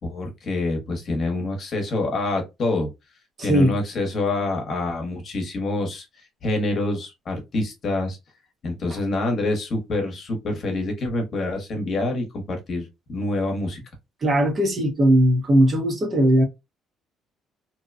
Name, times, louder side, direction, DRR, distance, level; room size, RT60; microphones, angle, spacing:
voice 1, 0.0-2.9 3.4-8.2 8.6-13.8, left 2 dB, 45° left, 0.9 m, -26 dB
voice 2, 3.4-3.7 14.2-16.4, right 1 dB, 35° right, 0.8 m, -18 dB
2.7 x 2.2 x 2.4 m
cardioid pair, 125°, 0 cm